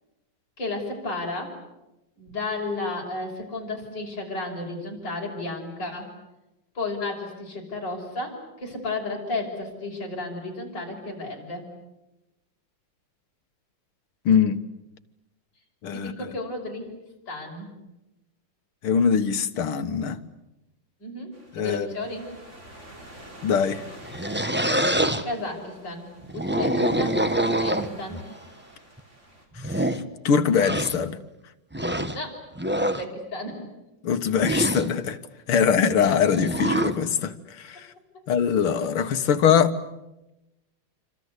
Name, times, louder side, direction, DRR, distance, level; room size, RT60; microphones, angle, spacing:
voice 1, 0.6-1.6 2.2-6.1 6.7-11.7 15.9-16.9 17.3-17.7 21.0-22.2 25.2-26.0 26.3-28.2 32.1-32.4 32.8-33.6, left 2 dB, 55° left, 0 dB, 6.8 m, -33 dB
voice 2, 14.3-14.6 15.8-16.3 18.8-20.2 21.6-21.9 23.4-23.8 29.6-29.9 30.2-31.2 34.0-35.2 35.5-37.9 38.3-39.7, left 7 dB, 80° left, 9 dB, 2.3 m, -22 dB
sound 1, 21.3-29.5, right 1 dB, 30° right, 5.5 m, -47 dB
sound 2, 23.9-25.2 26.2-28.2 29.0-29.1 29.6-30.0 30.6-31.0 31.7-32.2 32.6-33.0 34.4-34.9 36.3-37.0, right 1 dB, 5° right, 0.9 m, -25 dB
27.5 x 26.0 x 8.2 m, 0.95 s
omnidirectional pair, 2.3 m